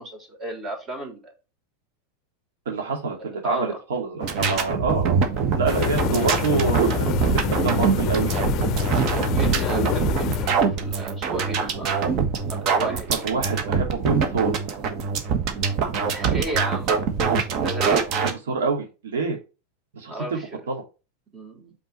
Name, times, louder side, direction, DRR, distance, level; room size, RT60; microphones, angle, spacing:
voice 1, 0.0-1.3 3.2-3.8 9.1-11.9 12.5-13.2 16.0-17.0 17.4-18.1 20.1-20.5 21.3-21.7, right 1 dB, 30° right, 3.4 m, -34 dB
voice 2, 2.7-5.2 5.6-7.1 7.3-8.3 12.8-14.5 18.2-19.4 19.9-20.4 20.7-20.8, right 4 dB, 90° right, 2.4 m, -26 dB
sound 1, 4.2-18.3, right 5 dB, 45° right, 1.4 m, -24 dB
sound 2, 5.7-10.6, left 13 dB, 40° left, 0.5 m, -27 dB
5.5 x 4.4 x 4.2 m
supercardioid pair, 125°, 0 cm